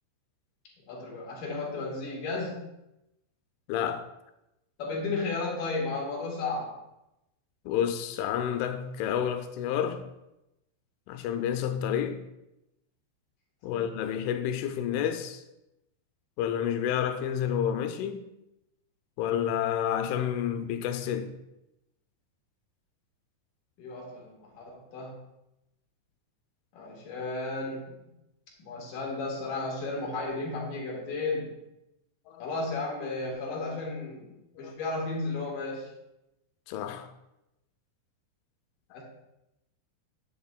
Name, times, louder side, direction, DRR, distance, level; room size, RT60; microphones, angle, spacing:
voice 1, 0.9-2.6 4.8-6.7 13.7-13.8 23.8-25.2 26.7-27.9 28.6-31.5 32.4-34.3 34.6-35.9 38.9-39.0, left 3 dB, 60° left, 2.4 m, -33 dB
voice 2, 3.7-4.1 7.7-10.1 11.1-12.2 13.6-15.4 16.4-18.2 19.2-21.3 32.3-32.5 34.6-34.7 36.7-37.1, left 9 dB, 90° left, 3.0 m, -29 dB
10.0 x 7.7 x 2.2 m
omnidirectional pair, 5.4 m